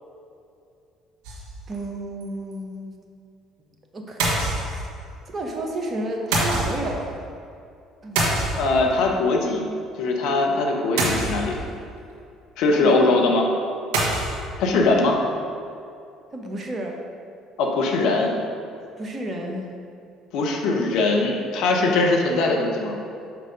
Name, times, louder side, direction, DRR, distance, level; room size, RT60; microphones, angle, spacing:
sound 1, 1.2-1.8 2.2-2.3 2.5-2.6 4.2-5.1 6.3-7.0 8.2-9.0 11.0-11.8 13.9-14.5, right 1 dB, 60° right, 1.6 m, -25 dB
voice 1, 1.7-2.9 3.9-4.2 4.7-4.8 5.3-7.2 8.0-8.2 12.7-13.0 16.3-17.0 19.0-19.8, right 1 dB, 30° right, 1 dB, 1.0 m, -31 dB
voice 2, 8.6-9.7 10.0-11.6 12.6-13.4 14.6-15.2 17.6-18.3 20.3-23.0, left 3 dB, 60° left, 0 dB, 0.9 m, -21 dB
6.1 x 5.1 x 5.0 m, 2.4 s
figure-of-eight pair, 55°, 0 cm